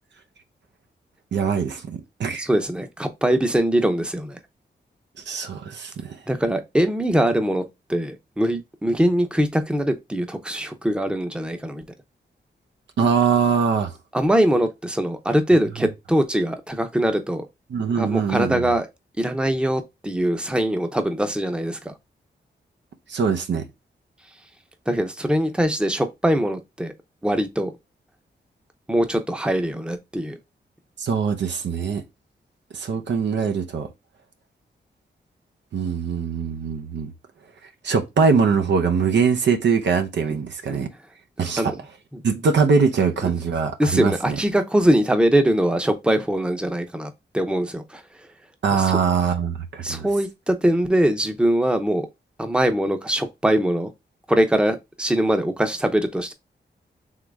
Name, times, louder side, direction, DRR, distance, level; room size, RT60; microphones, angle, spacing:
voice 1, 1.3-2.5 5.2-6.2 13.0-14.0 15.8-15.9 17.7-18.6 23.1-23.7 31.0-32.0 32.7-33.9 35.7-37.1 37.8-40.9 41.4-41.7 42.2-44.4 48.6-50.1, right 5 dB, 75° right, 0.7 m, -22 dB
voice 2, 2.4-4.4 6.3-7.6 7.9-11.8 14.1-17.5 18.0-18.9 19.2-21.9 24.9-26.9 27.2-27.8 28.9-30.4 40.7-40.8 41.6-41.8 42.1-42.2 43.2-43.4 43.8-48.0 48.7-48.9 49.8-52.1 52.4-53.9 54.3-56.3, right 1 dB, 5° right, 0.7 m, -22 dB
3.8 x 3.1 x 3.4 m
cardioid pair, 65°, 18 cm